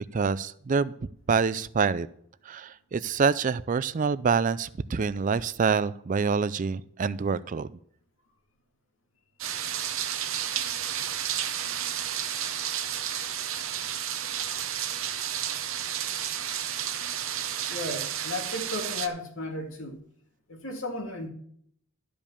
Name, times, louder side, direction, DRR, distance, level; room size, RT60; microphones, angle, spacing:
voice 1, 0.1-0.9 1.3-2.1 2.5-7.7, right 5 dB, 40° right, 0.4 m, -26 dB
sound 1, 9.4-19.1, right 10 dB, 70° right, 0.9 m, -31 dB
voice 2, 17.7-20.0 20.5-21.3, left 2 dB, 65° left, 2.3 m, -34 dB
12.5 x 5.2 x 7.0 m
head